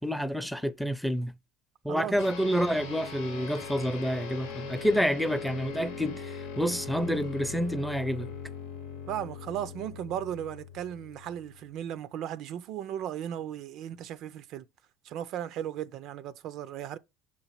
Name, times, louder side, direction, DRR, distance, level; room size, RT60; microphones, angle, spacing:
voice 1, 0.0-1.3 1.8-8.3, equal, ahead, 0.5 m, -28 dB
sound 1, 2.2-11.9, left 5 dB, 85° left, 0.9 m, -41 dB
voice 2, 9.1-14.7 15.0-17.0, right 10 dB, 60° right, 0.4 m, -36 dB
6.2 x 3.0 x 5.6 m
supercardioid pair, 85°, 0 cm